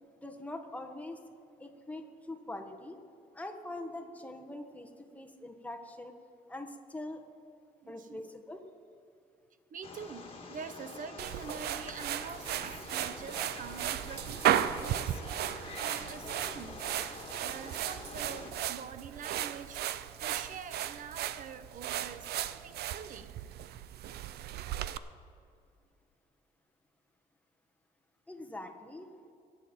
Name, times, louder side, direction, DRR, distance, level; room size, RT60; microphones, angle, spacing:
voice 1, 0.2-1.2 1.6-3.0 3.3-6.2 6.5-7.2 7.9-8.6 28.3-29.1, left 1 dB, 10° left, 3 dB, 1.4 m, -43 dB
voice 2, 7.8-8.3 9.7-15.4 15.8-23.4, right 6 dB, 55° right, 12 dB, 0.9 m, -46 dB
Wild animals, 9.8-18.5, left 3 dB, 35° left, 1.9 m, -46 dB
sound 1, 11.2-25.0, right 11 dB, 90° right, 0.5 m, -35 dB
23.0 x 9.1 x 4.5 m, 2.6 s
cardioid pair, 105°, 16 cm